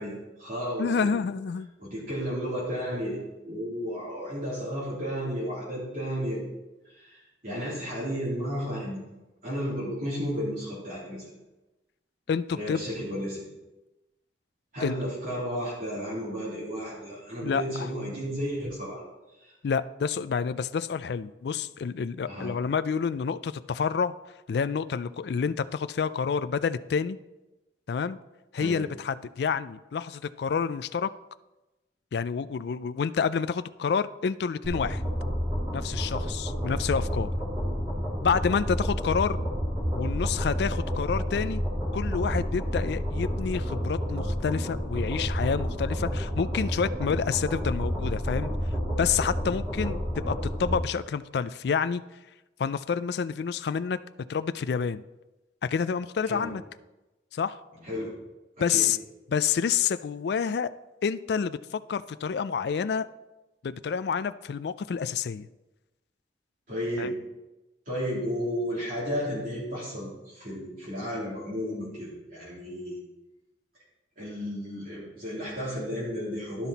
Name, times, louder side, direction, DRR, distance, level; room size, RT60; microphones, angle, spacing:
voice 1, 0.0-1.1 1.8-6.4 6.9-9.0 9.4-11.3 12.5-13.4 14.7-19.0 19.4-19.5 22.3-22.5 28.5-28.8 56.3-56.5 57.8-58.1 58.6-58.9 66.7-67.2 67.9-73.0 74.2-76.7, equal, 50° right, -8 dB, 3.1 m, -33 dB
voice 2, 0.8-1.7 12.3-12.8 14.8-14.9 17.4-17.9 19.6-24.1 24.5-27.2 27.9-28.2 28.5-31.1 32.1-35.0 35.7-37.3 38.2-39.4 39.9-41.6 41.9-48.5 49.0-52.0 52.6-54.0 54.3-55.0 55.6-56.6 57.3-57.6 58.6-59.0 59.3-60.7 61.0-63.1 63.6-65.5 67.0-67.1, left 6 dB, 65° left, 14 dB, 0.3 m, -28 dB
sound 1, 34.6-50.8, equal, 20° right, 2.7 m, -30 dB
12.0 x 5.8 x 4.1 m, 1.0 s
head